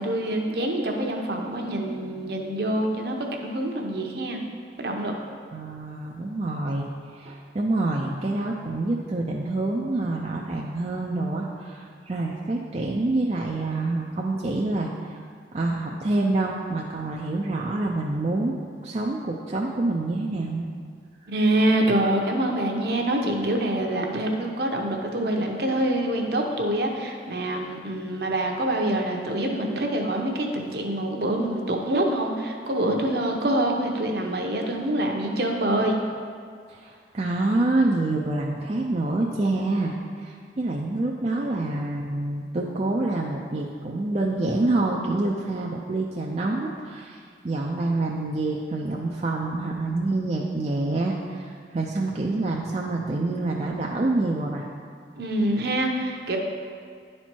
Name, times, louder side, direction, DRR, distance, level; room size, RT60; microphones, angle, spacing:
voice 1, 0.0-4.4 4.8-5.1 21.3-36.0 55.2-56.4, right 1 dB, 60° right, 1 dB, 0.9 m, -25 dB
voice 2, 5.5-6.9 7.1-15.1 15.5-18.6 18.8-20.7 36.7-54.7, right 2 dB, 35° right, -2 dB, 0.4 m, -27 dB
10.0 x 4.3 x 4.5 m, 2.2 s
head